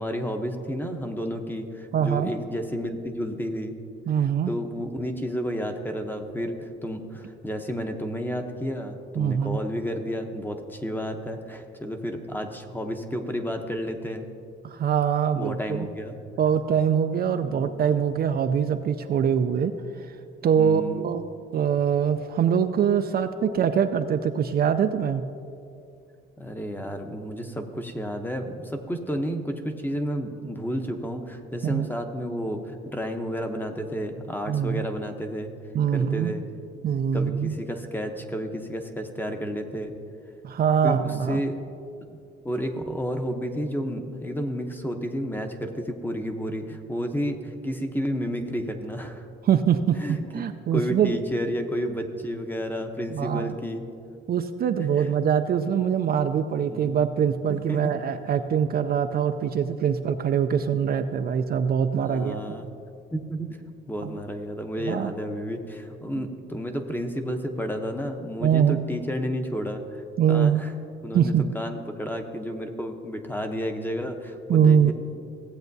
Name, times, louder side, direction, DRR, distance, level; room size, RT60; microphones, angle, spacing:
voice 1, 0.0-3.7 4.5-14.3 15.4-16.2 17.4-17.7 20.4-21.1 26.4-35.5 35.9-36.5 37.1-39.9 40.8-41.6 42.1-49.3 50.0-50.5 50.7-53.8 55.0-55.1 56.6-57.0 57.5-57.8 62.0-62.6 63.1-63.5 63.9-70.0 70.3-70.7 71.0-74.9, equal, 10° left, 5 dB, 0.8 m, -31 dB
voice 2, 1.9-2.3 4.1-4.5 9.2-9.6 14.6-15.9 16.4-19.7 20.4-21.2 21.5-25.2 31.6-31.9 34.5-34.9 35.7-36.3 36.8-37.5 40.4-41.4 49.4-51.2 53.1-53.5 54.3-62.4 64.0-64.1 64.8-65.1 68.4-68.8 70.2-70.6 71.1-71.5 74.5-74.9, right 8 dB, 50° right, 8 dB, 0.4 m, -23 dB
16.0 x 8.0 x 2.7 m, 2.5 s
cardioid pair, 110°, 21 cm